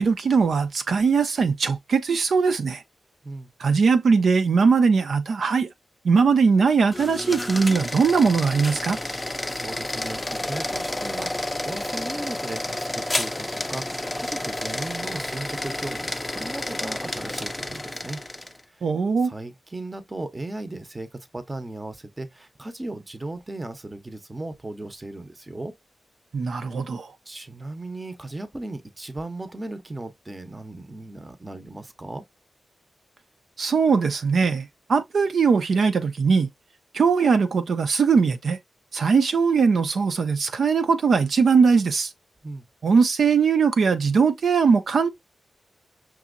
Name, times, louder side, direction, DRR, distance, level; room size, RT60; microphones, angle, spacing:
voice 1, 0.0-2.8 3.6-5.7 6.0-9.0 18.8-19.3 26.3-27.1 33.6-36.5 36.9-38.6 38.9-42.1 42.8-45.1, right 5 dB, 70° right, 0.6 m, -20 dB
sound 1, 6.8-18.6, left 1 dB, 10° left, 0.5 m, -30 dB
voice 2, 9.5-18.2 18.6-18.9 19.2-25.7 26.6-26.7 27.3-32.2 42.4-42.6, right 2 dB, 20° right, 0.8 m, -36 dB
6.0 x 2.8 x 2.5 m
wide cardioid pair, 110°, 0 cm